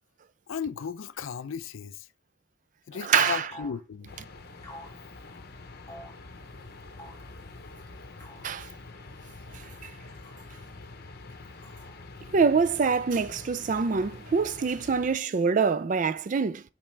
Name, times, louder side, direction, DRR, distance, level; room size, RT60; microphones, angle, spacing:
voice 1, 0.5-2.1 2.9-4.1 12.2-12.3, left 6 dB, 70° left, 0.4 m, -35 dB
voice 2, 3.0-3.4 8.4-8.7 9.8-9.9 12.3-16.6, right 5 dB, 40° right, 0.3 m, -25 dB
sound 1, 3.5-3.8 4.6-5.0 5.9-6.2 7.0-7.3 8.2-8.5 9.9-10.4 11.3-12.0, equal, 15° left, 1.7 m, -48 dB
sound 2, 4.1-15.2, left 3 dB, 45° left, 0.8 m, -46 dB
7.2 x 4.7 x 3.2 m
head